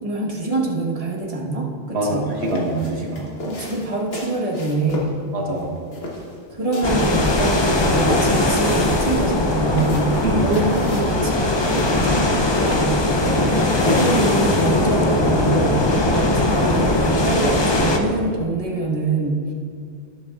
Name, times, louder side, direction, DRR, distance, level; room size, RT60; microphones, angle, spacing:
voice 1, 0.0-2.3 3.1-5.1 6.5-10.2 10.4-12.9 13.8-19.5, right 3 dB, 30° right, -1 dB, 1.2 m, -25 dB
voice 2, 1.9-3.3 5.3-5.7 10.2-10.5 13.3-13.6, right 1 dB, 55° right, -1 dB, 1.6 m, -24 dB
sound 1, 2.3-13.9, left 1 dB, 50° left, 1.5 m, -32 dB
sound 2, 6.8-18.0, left 2 dB, 35° left, 0.4 m, -20 dB
17.0 x 7.7 x 2.4 m, 2.2 s
omnidirectional pair, 1.4 m